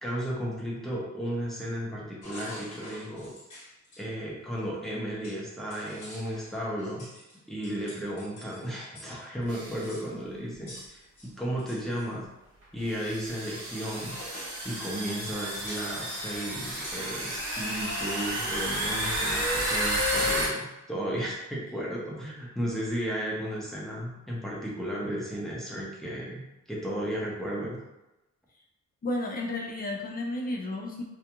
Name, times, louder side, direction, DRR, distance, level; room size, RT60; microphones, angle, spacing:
voice 1, 0.0-3.3 4.0-7.1 7.5-12.3 12.7-14.2 14.6-27.8, equal, ahead, -6 dB, 0.7 m, -34 dB
sound 1, 2.2-4.0 4.9-5.0 5.2-9.2 9.4-9.5 9.8-10.1 10.7-12.1 13.4-13.5 13.8-15.9 16.6-17.1 17.5-17.6 18.1-18.4 18.7-19.4 19.6-20.5, left 1 dB, 90° left, 1.1 m, -46 dB
sound 2, 9.5-9.8 10.8-10.9 12.0-12.1 12.9-20.5, equal, 50° right, 0.9 m, -31 dB
voice 2, 29.0-31.0, left 2 dB, 30° left, 0 dB, 0.5 m, -32 dB
2.4 x 2.3 x 2.9 m, 0.97 s
wide cardioid pair, 135°, 30 cm